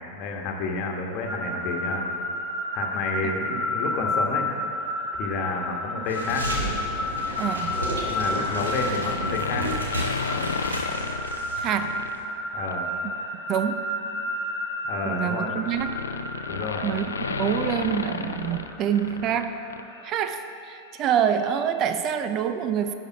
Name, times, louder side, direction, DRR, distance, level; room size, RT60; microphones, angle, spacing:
voice 1, 0.1-2.1 2.7-4.4 5.1-6.5 8.0-9.7 12.5-12.9 14.8-15.5 16.4-16.9, left 3 dB, 40° left, 1 dB, 1.2 m, -30 dB
sound 1, 1.2-20.0, left 1 dB, 10° left, 1.5 m, -32 dB
sound 2, 6.1-11.7 11.9-12.2, right 1 dB, 75° right, 1.4 m, -32 dB
voice 2, 7.4-7.7 11.6-12.0 13.5-13.9 15.0-16.0 16.8-17.0 17.4-19.6 20.0-22.9, right 8 dB, 35° right, 9 dB, 0.4 m, -26 dB
sound 3, 8.5-12.2 12.6-12.9 14.1-19.4 19.7-19.8, left 5 dB, 70° left, 0.4 m, -33 dB
11.0 x 5.3 x 5.9 m, 2.6 s
figure-of-eight pair, 90°, 0 cm